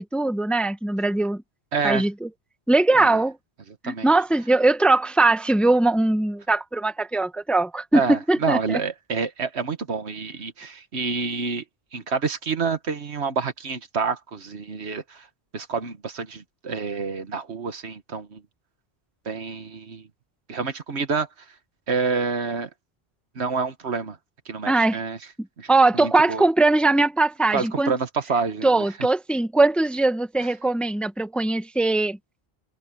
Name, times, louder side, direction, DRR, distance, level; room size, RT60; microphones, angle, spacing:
voice 1, 0.0-1.4 1.8-2.3 2.7-3.4 3.8-8.8 24.7-25.0 25.7-27.9 28.6-32.2, right 2 dB, ahead, 0.9 m, -21 dB
voice 2, 1.7-2.1 3.0-3.2 3.8-4.1 7.9-11.6 11.9-15.3 15.5-18.4 19.3-20.0 20.5-21.3 21.9-22.7 23.4-24.2 24.5-25.2 25.6-26.5 27.5-28.9, right 5 dB, 80° right, 1.6 m, -28 dB
open air
omnidirectional pair, 1.1 m